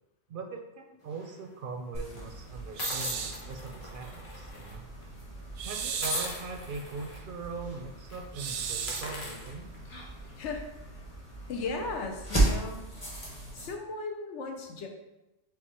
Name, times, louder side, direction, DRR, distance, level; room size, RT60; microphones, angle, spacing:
voice 1, 0.3-4.9 5.6-9.7, right 4 dB, 60° right, 4 dB, 0.6 m, -41 dB
sound 1, 1.1-1.4 2.2-2.3 2.8-4.7 5.0-5.2 6.0-7.2 7.6-7.8 8.1-8.2 8.7-10.3, left 3 dB, 65° left, 1.2 m, -40 dB
sound 2, 1.9-13.7, right 2 dB, 30° left, 1.4 m, -36 dB
sound 3, 2.8-3.4 5.6-6.4 8.3-9.1, right 7 dB, 90° right, 0.9 m, -34 dB
voice 2, 11.5-12.8 13.5-14.9, left 3 dB, 90° left, 3 dB, 1.0 m, -36 dB
4.7 x 3.8 x 2.9 m, 0.96 s
omnidirectional pair, 1.2 m